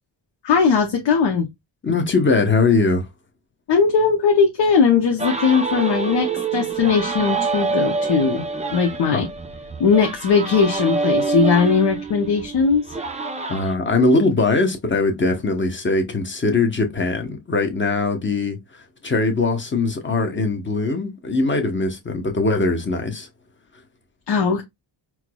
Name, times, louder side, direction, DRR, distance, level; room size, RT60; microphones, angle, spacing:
voice 1, 0.4-1.5 3.7-8.4 8.7-9.3 9.8-13.0 24.3-24.6, left 5 dB, 65° left, 0.8 m, -19 dB
voice 2, 1.8-3.1 9.1-9.2 13.5-23.3, left 3 dB, 25° left, 0.9 m, -21 dB
sound 1, 5.2-13.7, right 4 dB, 15° right, 0.5 m, -26 dB
4.5 x 2.0 x 2.2 m
cardioid pair, 85°, 46 cm